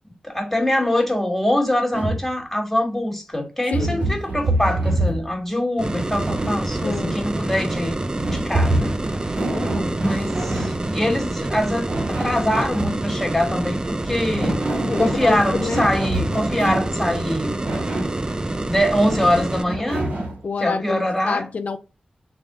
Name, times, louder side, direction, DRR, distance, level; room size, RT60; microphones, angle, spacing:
voice 1, 0.2-9.2 10.0-14.6 14.9-17.6 18.6-20.1 20.6-21.5, left 1 dB, 5° left, 1.7 m, -23 dB
sound 1, 1.9-2.3 3.7-5.3 6.1-6.8 8.2-10.8 11.9-13.0 14.1-17.0 17.6-18.2 19.0-20.4, right 1 dB, 80° right, 1.6 m, -26 dB
voice 2, 3.7-4.0 6.8-7.2 9.4-10.2 14.9-15.9 20.4-21.8, left 4 dB, 70° left, 0.4 m, -28 dB
sound 2, 5.8-19.7, right 2 dB, 30° right, 0.4 m, -27 dB
3.5 x 2.4 x 3.7 m
cardioid pair, 45°, 3 cm